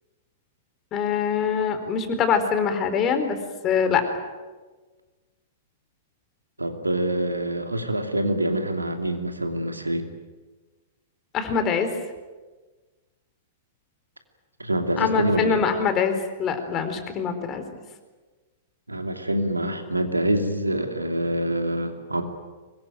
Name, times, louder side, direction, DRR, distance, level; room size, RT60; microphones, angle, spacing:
voice 1, 0.9-3.4 3.6-4.0 11.3-11.9 15.0-17.6, left 6 dB, 30° left, 8 dB, 4.3 m, -24 dB
voice 2, 6.6-10.1 14.6-15.6 18.9-22.2, right 1 dB, 90° right, 6 dB, 2.8 m, -26 dB
24.5 x 22.0 x 9.3 m, 1.3 s
figure-of-eight pair, 105°, 0 cm